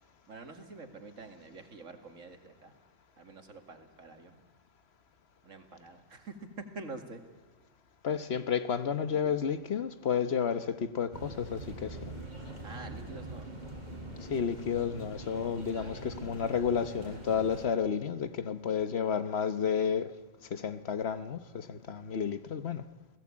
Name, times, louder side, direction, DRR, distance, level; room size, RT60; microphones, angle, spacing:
voice 1, 0.3-2.7 3.2-4.4 5.4-6.5 6.7-7.2 12.6-13.5, right 3 dB, 80° right, 5 dB, 2.5 m, -47 dB
voice 2, 8.0-12.1 14.3-20.1 20.5-22.8, left 7 dB, 55° left, 12 dB, 1.2 m, -31 dB
sound 1, 11.1-17.6, right 1 dB, 35° right, 4.3 m, -43 dB
29.0 x 18.0 x 8.6 m, 1.2 s
omnidirectional pair, 1.3 m